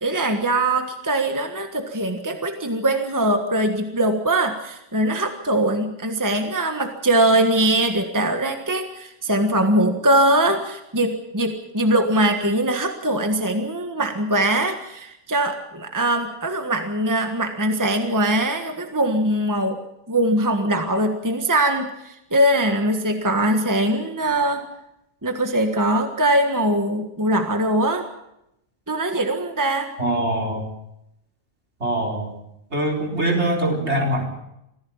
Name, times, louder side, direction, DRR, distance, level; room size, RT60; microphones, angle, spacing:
voice 1, 0.0-19.8 20.1-24.7 25.2-28.1 28.9-29.9, right 1 dB, 15° right, 5 dB, 1.5 m, -21 dB
voice 2, 30.0-30.6 31.8-32.3 32.7-34.2, right 1 dB, 60° right, 0 dB, 4.6 m, -23 dB
25.5 x 16.0 x 7.2 m, 0.82 s
omnidirectional pair, 1.3 m